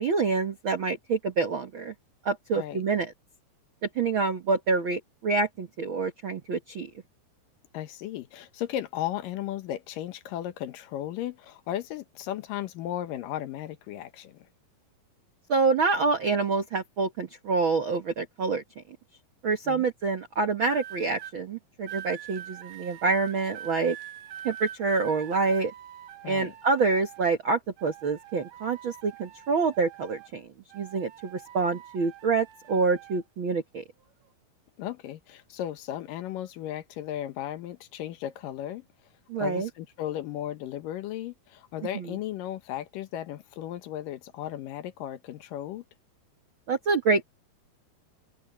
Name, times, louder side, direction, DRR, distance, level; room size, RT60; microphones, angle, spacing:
voice 1, 0.0-1.9 2.2-3.1 3.9-6.9 15.5-18.8 19.4-24.0 24.4-25.7 26.2-30.5 30.7-33.8 39.3-39.7 41.9-42.2 46.7-47.2, right 4 dB, 60° right, 1.3 m, -27 dB
voice 2, 7.7-14.5 19.7-19.9 26.2-26.5 34.8-38.8 39.4-45.8, left 12 dB, 70° left, 2.5 m, -35 dB
sound 1, 20.6-21.3 21.9-27.4 27.8-30.4 30.7-33.2 34.0-34.3, right 11 dB, 85° right, 3.5 m, -44 dB
omnidirectional pair, 4.5 m